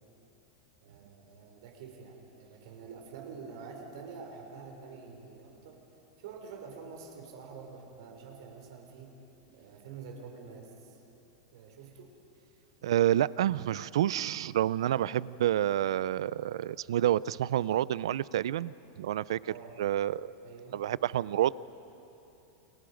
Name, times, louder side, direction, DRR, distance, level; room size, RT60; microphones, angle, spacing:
voice 1, 0.8-5.8 6.2-9.1 9.5-11.0 11.5-12.1 19.4-19.8 20.4-20.8 21.0-21.3, right 5 dB, 55° right, 2 dB, 3.5 m, -47 dB
voice 2, 12.8-19.4 19.8-20.3 20.7-21.5, right 12 dB, 85° right, 20 dB, 0.5 m, -28 dB
29.0 x 22.5 x 5.1 m, 2.9 s
supercardioid pair, 180°, 3 cm